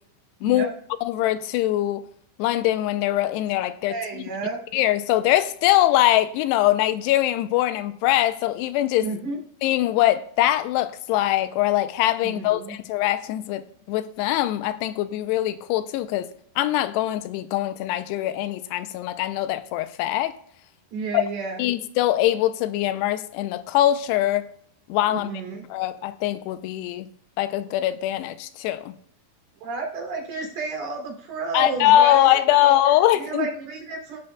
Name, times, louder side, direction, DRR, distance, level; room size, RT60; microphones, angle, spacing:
voice 1, 1.0-2.1 2.4-3.9 4.7-9.1 9.6-13.6 13.9-16.3 16.6-20.3 21.1-21.2 21.6-24.5 24.9-25.3 25.7-27.1 27.4-28.9 31.5-33.5, left 13 dB, 85° left, 2.7 m, -22 dB
voice 2, 3.9-4.6 9.0-9.4 12.2-12.8 20.9-21.6 25.1-25.6 29.6-32.7 33.1-34.2, right 4 dB, 70° right, 4.7 m, -31 dB
15.0 x 11.5 x 2.3 m
omnidirectional pair, 4.8 m